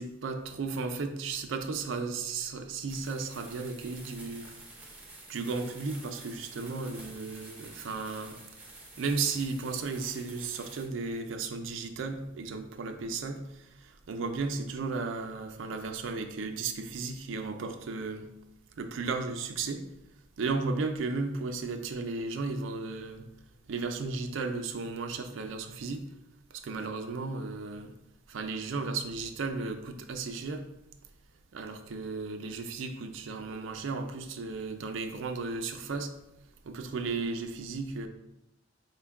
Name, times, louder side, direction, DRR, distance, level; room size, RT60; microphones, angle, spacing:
voice 1, 0.0-5.0 5.3-8.4 9.0-18.3 18.8-19.9 20.4-23.3 23.7-26.0 26.5-28.0 28.3-30.7 31.5-36.1 36.6-38.1, right 4 dB, 75° right, 6 dB, 0.4 m, -35 dB
sound 1, 2.9-10.9, right 2 dB, 10° right, 0.6 m, -49 dB
4.4 x 2.2 x 3.4 m, 0.89 s
head